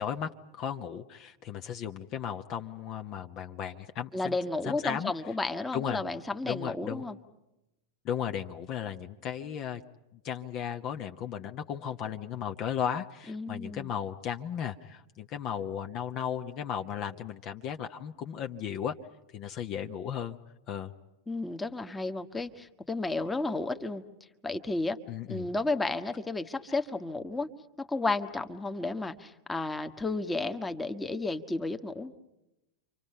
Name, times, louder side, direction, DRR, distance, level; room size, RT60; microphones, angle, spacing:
voice 1, 0.0-5.4 5.7-6.0 6.4-7.1 8.0-9.8 10.2-18.9 19.3-20.4 20.7-20.9 25.1-25.5, left 8 dB, 35° left, 6 dB, 1.0 m, -35 dB
voice 2, 4.1-7.2 13.3-13.9 21.3-24.0 24.4-25.0 25.3-27.5 27.8-32.1, left 2 dB, 10° left, 8 dB, 1.4 m, -32 dB
30.0 x 25.5 x 5.6 m, 0.93 s
figure-of-eight pair, 90°, 0 cm